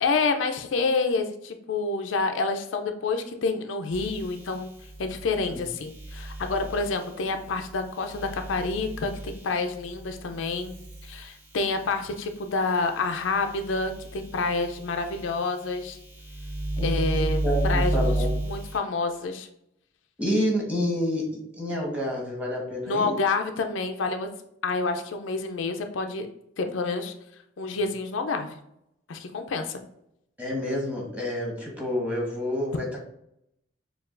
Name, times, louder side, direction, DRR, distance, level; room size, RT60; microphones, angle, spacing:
voice 1, 0.0-4.7 5.0-10.7 11.0-16.0 16.8-18.1 18.4-19.5 22.9-24.3 24.6-26.3 26.6-27.1 27.6-28.6 29.1-29.8, left 3 dB, 85° left, 6 dB, 0.4 m, -28 dB
sound 1, 3.9-12.2 12.7-18.8, right 1 dB, 80° right, 1.5 m, -33 dB
voice 2, 16.8-18.3 20.2-23.1 30.4-33.0, left 1 dB, 10° right, -2 dB, 1.1 m, -29 dB
6.5 x 2.3 x 2.5 m, 0.77 s
head